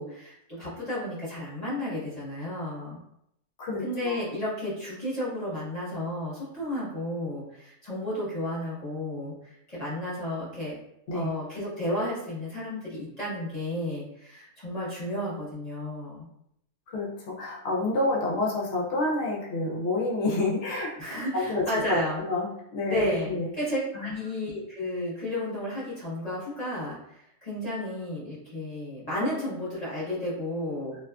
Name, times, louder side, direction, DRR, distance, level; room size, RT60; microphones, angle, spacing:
voice 1, 0.0-3.0 3.8-10.8 11.1-16.3 21.0-22.2 22.9-31.0, left 1 dB, 30° left, -10 dB, 0.9 m, -32 dB
voice 2, 3.6-4.2 11.1-11.3 16.9-20.9 21.3-21.6 21.9-23.5 23.9-24.3, left 2 dB, 60° left, -3 dB, 0.8 m, -28 dB
2.6 x 2.3 x 2.3 m, 0.77 s
omnidirectional pair, 1.6 m